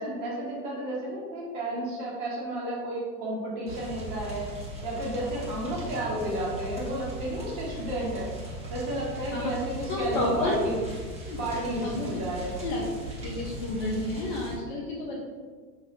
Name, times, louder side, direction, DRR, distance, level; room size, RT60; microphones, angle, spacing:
voice 1, 0.0-4.6 4.8-8.3 8.7-10.8 11.4-12.6, right 1 dB, 50° right, -4 dB, 1.1 m, -32 dB
sound 1, 3.7-14.6, right 1 dB, 15° right, 0.7 m, -38 dB
voice 2, 9.9-10.6 11.3-11.4 11.8-12.1 12.6-15.2, left 2 dB, 35° left, -3 dB, 0.4 m, -31 dB
3.3 x 2.3 x 2.5 m, 1.5 s
hypercardioid pair, 95°, 49 cm